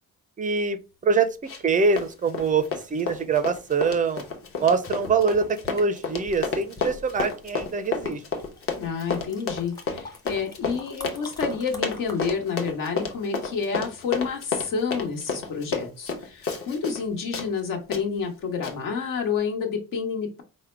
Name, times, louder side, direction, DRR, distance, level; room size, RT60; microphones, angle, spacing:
voice 1, 0.4-0.8 1.0-1.3 1.6-4.2 4.6-8.2, right 5 dB, 25° right, 0.4 m, -24 dB
sound 1, 0.8-1.8 4.1-4.2 4.6-13.7 18.7-18.8 19.2-19.3, left 2 dB, 10° left, 0.7 m, -46 dB
Run, 1.5-1.7 2.0-17.0 17.3-17.5 17.9-18.0 18.6-18.8, left 4 dB, 40° left, 0.9 m, -31 dB
voice 2, 8.8-20.4, left 5 dB, 70° left, 1.4 m, -29 dB
4.9 x 2.1 x 4.5 m
cardioid pair, 175°, 34 cm